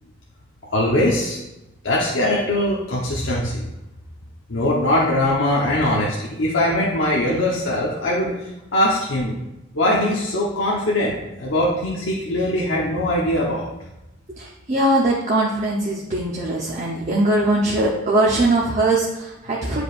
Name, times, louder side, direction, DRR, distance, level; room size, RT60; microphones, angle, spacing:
voice 1, 0.7-1.4 1.8-3.7 4.5-9.4 9.7-13.7, left 1 dB, 85° left, -4 dB, 1.1 m, -21 dB
voice 2, 14.4-19.8, right 2 dB, 35° right, -5 dB, 0.9 m, -21 dB
9.9 x 4.9 x 2.5 m, 0.93 s
head